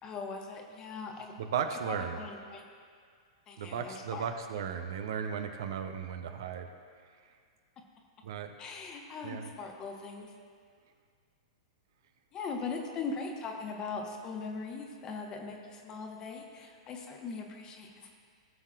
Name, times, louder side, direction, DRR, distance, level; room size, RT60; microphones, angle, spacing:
voice 1, 0.0-1.3 1.9-2.6 3.5-4.3 8.6-10.3 12.3-18.2, left 4 dB, 30° left, 1 dB, 1.3 m, -40 dB
voice 2, 1.4-2.2 3.6-6.7 8.2-8.5 9.2-9.5, right 7 dB, 55° right, 6 dB, 0.7 m, -35 dB
19.0 x 7.3 x 2.5 m, 2.1 s
figure-of-eight pair, 100°, 3 cm